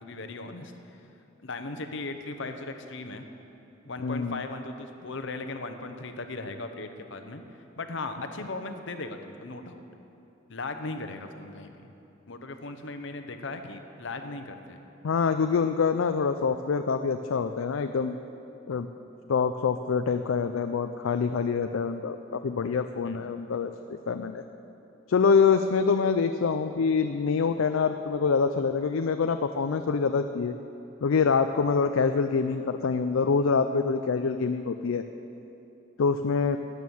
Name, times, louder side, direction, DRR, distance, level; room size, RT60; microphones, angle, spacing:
voice 1, 0.0-1.0 1.4-3.3 3.8-7.4 7.8-9.8 10.5-11.9 12.3-14.8 23.0-23.2, left 3 dB, 65° left, 7 dB, 0.9 m, -37 dB
voice 2, 4.0-4.4 15.0-18.2 18.7-18.9 19.3-23.7 24.1-24.4 25.1-30.5 31.0-35.0 36.0-36.6, left 5 dB, 85° left, 8 dB, 0.4 m, -25 dB
12.5 x 9.5 x 7.1 m, 2.9 s
head